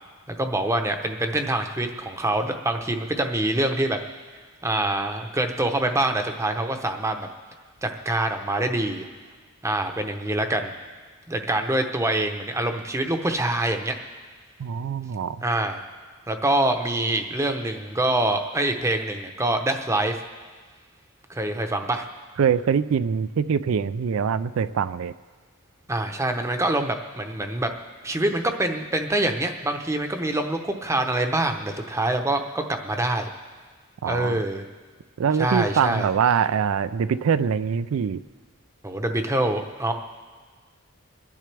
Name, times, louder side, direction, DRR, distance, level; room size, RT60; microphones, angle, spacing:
voice 1, 0.3-4.0 4.6-7.3 7.8-9.1 9.6-10.7 11.3-13.9 15.4-15.8 16.3-20.2 21.3-22.1 25.9-27.7 28.0-33.3 34.0-34.7 35.4-36.1 38.8-39.9, right 1 dB, 15° right, 5 dB, 0.8 m, -25 dB
voice 2, 14.6-15.4 22.4-25.1 34.0-34.4 35.2-38.2, right 7 dB, 70° right, 14 dB, 0.3 m, -23 dB
26.0 x 10.5 x 3.4 m, 1.5 s
head